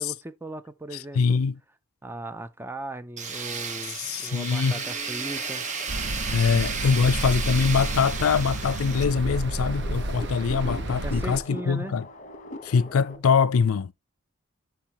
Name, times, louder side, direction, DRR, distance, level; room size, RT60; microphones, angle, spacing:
voice 1, 0.0-1.4 2.0-5.6 11.0-11.9, right 1 dB, 10° right, 0.5 m, -38 dB
voice 2, 1.1-1.6 4.0-4.8 6.3-12.0 12.6-13.9, left 5 dB, 80° left, 0.4 m, -23 dB
Tools, 3.2-9.0, right 5 dB, 35° right, 1.1 m, -33 dB
sound 1, 5.2-13.2, left 2 dB, 35° left, 1.0 m, -43 dB
sound 2, 5.9-11.4, right 1 dB, 55° right, 0.8 m, -31 dB
12.0 x 4.6 x 2.9 m
head